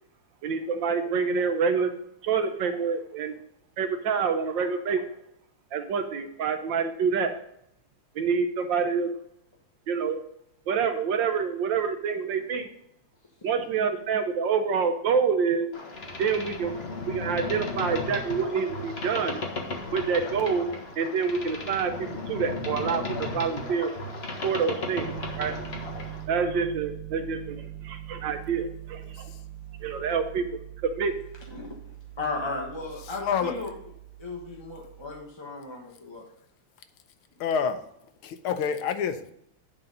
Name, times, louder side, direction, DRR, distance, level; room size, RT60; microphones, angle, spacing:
voice 1, 0.4-1.9 2.2-3.3 3.8-5.1 5.7-7.3 8.1-9.1 9.9-10.2 10.7-12.7 13.4-15.7 16.2-16.7 17.1-19.4 19.9-20.7 20.9-23.9 24.4-25.6 26.3-29.3 29.8-31.2, right 6 dB, 65° right, 1.3 m, -27 dB
Boat Water vehicle, 15.7-26.3, left 2 dB, 35° left, 1.1 m, -35 dB
Piano, 25.0-35.2, right 12 dB, 85° right, 1.5 m, -42 dB
voice 2, 29.0-29.4 33.0-33.6 37.4-37.8 38.2-39.3, left 7 dB, 80° left, 1.6 m, -28 dB
voice 3, 32.2-33.7 34.2-36.2, left 3 dB, 20° left, 0.7 m, -35 dB
9.7 x 4.0 x 5.4 m
omnidirectional pair, 2.4 m